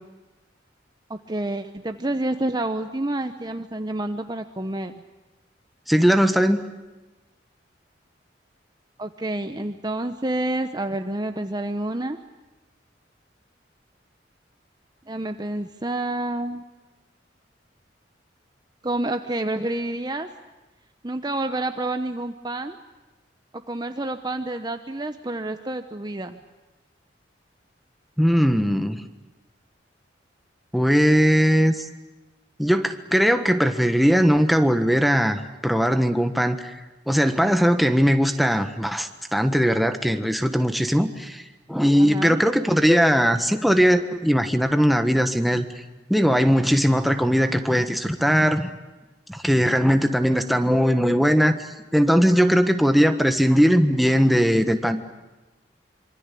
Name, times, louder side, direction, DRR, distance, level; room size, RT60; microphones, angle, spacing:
voice 1, 1.1-4.9 9.0-12.2 15.1-16.6 18.8-20.3 21.0-22.8 23.7-26.4 42.0-42.4, right 1 dB, 20° right, 8 dB, 0.9 m, -28 dB
voice 2, 5.9-6.6 28.2-29.0 30.7-31.9 32.6-36.7 37.1-41.4 41.7-45.6 46.1-48.7 49.3-51.6 51.9-55.0, equal, ahead, 7 dB, 1.4 m, -19 dB
26.0 x 24.5 x 8.5 m, 1.1 s
head